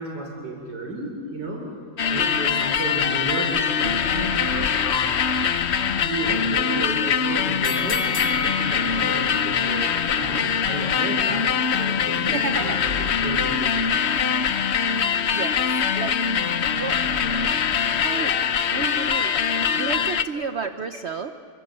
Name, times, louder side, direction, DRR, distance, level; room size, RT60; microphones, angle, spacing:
voice 1, 0.0-1.7 2.1-5.2 6.0-12.8 13.2-13.9 20.3-20.5, right 2 dB, 90° right, 1 dB, 4.2 m, -32 dB
sound 1, 2.0-20.2, left 7 dB, 50° left, 0.9 m, -23 dB
sound 2, 7.6-10.7 11.2-11.3, left 4 dB, 30° left, 1.9 m, -32 dB
voice 2, 12.2-12.8 15.3-16.2 16.7-17.0 18.0-18.4 18.7-19.3 19.7-21.3, right 5 dB, 50° right, 8 dB, 0.9 m, -31 dB
27.5 x 26.0 x 7.5 m, 2.4 s
omnidirectional pair, 1.8 m